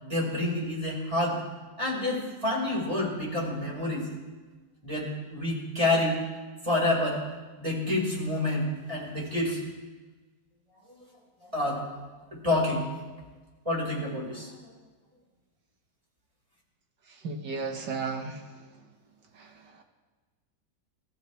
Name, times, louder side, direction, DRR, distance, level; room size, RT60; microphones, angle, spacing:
voice 1, 0.0-1.4 1.8-4.1 4.8-6.1 6.6-7.2 7.6-9.6 11.4-11.8 12.3-12.8 13.6-14.5, left 1 dB, 15° right, -4 dB, 5.1 m, -28 dB
voice 2, 17.1-18.7 19.3-19.8, right 4 dB, 70° right, 4 dB, 2.1 m, -35 dB
26.0 x 14.5 x 3.4 m, 1.3 s
omnidirectional pair, 2.0 m